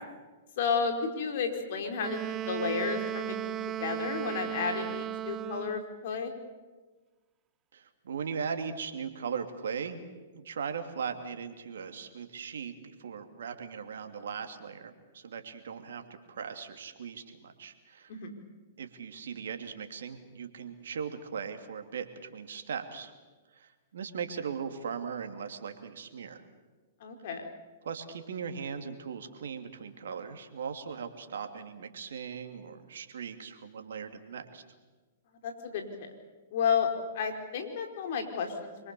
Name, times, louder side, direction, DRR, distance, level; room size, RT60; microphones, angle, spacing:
voice 1, 0.6-2.2 2.5-6.3 18.1-18.3 27.0-27.5 35.4-36.1 36.5-36.9 37.1-38.9, left 6 dB, 55° left, 4 dB, 4.6 m, -32 dB
Wind instrument woodwind instrument, 2.0-5.9, right 12 dB, 30° right, 0.7 m, -35 dB
voice 2, 7.7-10.0 10.3-16.0 16.3-18.1 18.8-22.1 22.3-23.1 23.5-26.4 27.8-34.6, right 6 dB, 70° right, 6 dB, 2.8 m, -39 dB
26.0 x 23.5 x 7.0 m, 1.3 s
hypercardioid pair, 115°, 0 cm